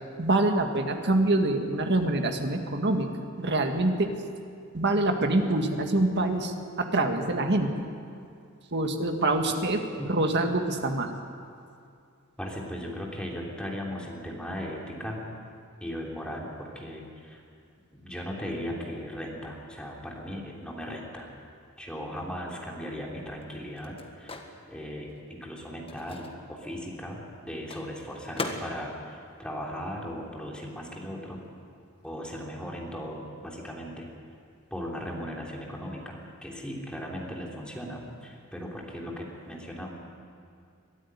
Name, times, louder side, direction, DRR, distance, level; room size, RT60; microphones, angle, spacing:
voice 1, 0.2-3.1 3.4-4.2 4.7-7.7 8.7-11.1, right 2 dB, 55° right, 5 dB, 1.9 m, -25 dB
voice 2, 12.4-15.2 15.8-17.4 17.9-21.3 21.8-24.4 24.7-31.4 32.0-34.1 34.7-39.9, equal, 5° left, -2 dB, 3.2 m, -37 dB
Microwave oven, 22.6-30.6 30.8-32.7, left 2 dB, 25° left, 1.6 m, -43 dB
22.5 x 13.0 x 9.9 m, 2.4 s
head